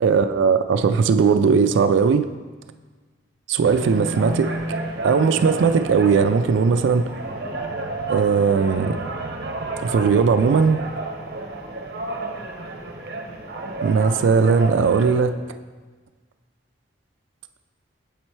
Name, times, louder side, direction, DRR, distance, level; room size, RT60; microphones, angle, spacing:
voice 1, 0.0-2.3 3.5-4.5 5.0-7.1 8.1-9.0 9.8-10.8 13.8-15.3, right 5 dB, 90° right, 10 dB, 0.3 m, -18 dB
sound 1, 3.6-15.2, right 2 dB, 55° right, 0.7 m, -31 dB
7.2 x 4.3 x 4.5 m, 1.4 s
head